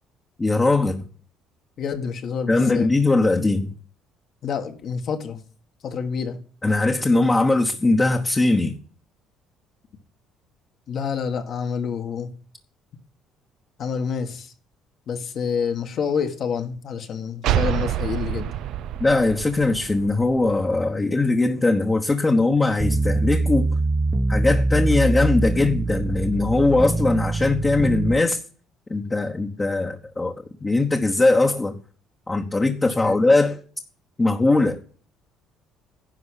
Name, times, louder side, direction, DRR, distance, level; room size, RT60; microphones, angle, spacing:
voice 1, 0.4-1.1 2.5-3.7 6.6-8.8 19.0-23.7 24.3-28.4 28.9-30.4 30.6-31.8 32.3-33.6 34.2-34.8, left 2 dB, 20° left, 1.1 m, -20 dB
voice 2, 1.8-2.9 4.4-5.4 5.8-6.4 10.9-12.3 13.8-14.5 15.1-18.5 32.8-33.2, left 6 dB, 60° left, 1.7 m, -28 dB
sound 1, 17.4-20.9, right 11 dB, 70° right, 0.5 m, -27 dB
sound 2, 22.8-28.1, right 2 dB, 15° right, 1.0 m, -23 dB
11.0 x 4.8 x 8.3 m
supercardioid pair, 85°, 0 cm